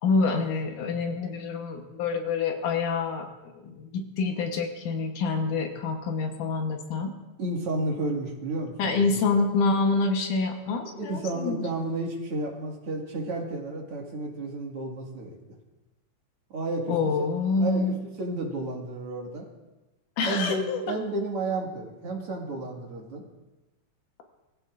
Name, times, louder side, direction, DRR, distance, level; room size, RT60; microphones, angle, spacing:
voice 1, 0.0-7.1 8.8-11.6 16.9-18.0 20.2-20.8, left 4 dB, 85° left, 4 dB, 2.7 m, -27 dB
voice 2, 7.4-9.1 11.0-15.4 16.5-17.3 17.6-19.5 20.3-23.2, right 2 dB, 50° right, -1 dB, 2.8 m, -32 dB
23.0 x 15.5 x 2.5 m, 1.1 s
omnidirectional pair, 3.5 m